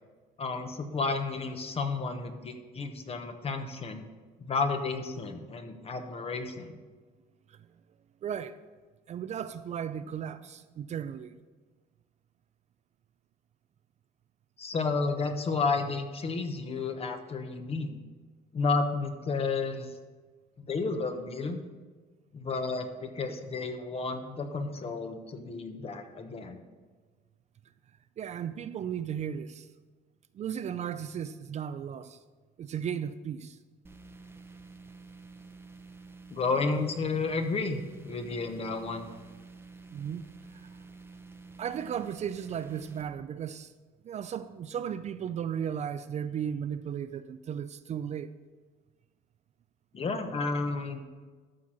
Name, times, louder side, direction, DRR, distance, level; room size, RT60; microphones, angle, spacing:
voice 1, 0.4-4.1 4.4-6.7 14.6-18.0 18.5-20.0 20.7-21.6 22.3-26.6 36.3-39.1 49.9-51.0, left 4 dB, 35° left, 1.0 m, -32 dB
voice 2, 8.2-8.6 9.1-11.4 28.2-29.7 30.3-32.2 32.6-33.6 39.9-40.7 41.6-43.7 44.0-48.3, right 8 dB, 40° right, 0.4 m, -35 dB
sound 1, 33.8-43.0, right 3 dB, 15° right, 0.7 m, -50 dB
12.5 x 4.3 x 6.2 m
cardioid pair, 110°, 17 cm